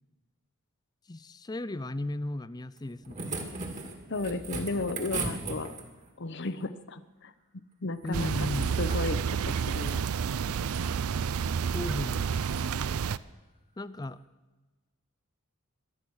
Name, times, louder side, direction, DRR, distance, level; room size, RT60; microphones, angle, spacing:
voice 1, 1.1-3.4 8.0-8.8 11.7-12.3 13.8-14.2, left 1 dB, 20° left, 17 dB, 0.4 m, -35 dB
sound 1, 2.8-6.1 8.0-9.0 9.4-10.0 10.5-11.0 11.6-11.8 12.4-12.7 14.0-14.1, right 3 dB, 35° right, 2.0 m, -39 dB
voice 2, 4.1-5.7 6.2-7.3 7.8-8.5 8.8-9.2 9.4-10.1, left 3 dB, 55° left, 13 dB, 0.8 m, -34 dB
sound 2, 8.1-13.2, right 6 dB, 80° right, 0.4 m, -30 dB
23.0 x 8.8 x 6.3 m, 1.2 s
head